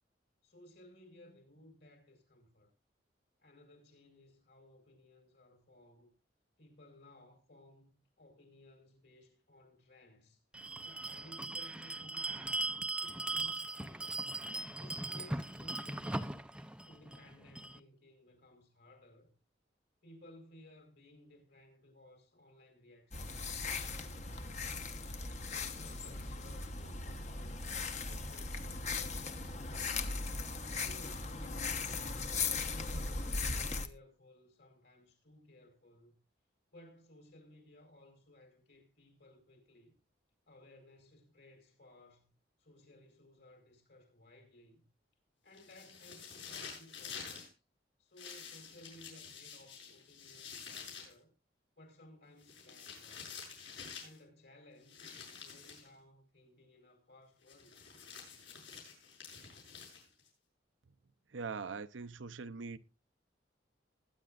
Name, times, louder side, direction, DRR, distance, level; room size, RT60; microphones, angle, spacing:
voice 1, 0.4-2.7 3.4-6.1 6.6-12.6 13.0-14.2 14.7-16.3 16.8-19.3 20.0-24.2 25.5-27.6 28.1-30.2 30.8-32.2 32.7-36.2 36.7-39.9 40.5-42.3 42.6-44.9 45.4-47.6 48.0-51.3 51.8-53.5 54.0-57.8, left 1 dB, 60° left, 4.8 m, -59 dB
Bell, 10.5-17.8, right 2 dB, 5° right, 0.5 m, -39 dB
sound 1, 23.1-33.9, left 4 dB, 40° left, 1.0 m, -38 dB
sound 2, 45.5-47.5 48.2-51.1 52.4-54.2 54.9-55.9 57.5-60.3, left 6 dB, 75° left, 7.3 m, -49 dB
voice 2, 61.3-62.8, right 4 dB, 85° right, 0.7 m, -42 dB
21.0 x 9.8 x 2.5 m
head